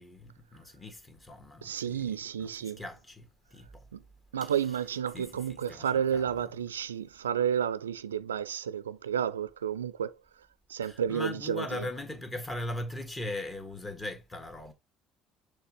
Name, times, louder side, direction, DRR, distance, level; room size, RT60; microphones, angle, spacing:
voice 1, 0.0-2.1 2.4-2.5 2.8-3.8 4.4-4.5 5.1-5.3 5.7-6.2 10.8-14.7, left 1 dB, 20° left, 1.7 m, -39 dB
voice 2, 1.6-2.8 3.9-4.0 4.3-10.1 10.7-11.9, right 8 dB, 80° right, 0.4 m, -31 dB
6.6 x 3.3 x 4.5 m
figure-of-eight pair, 55°, 0 cm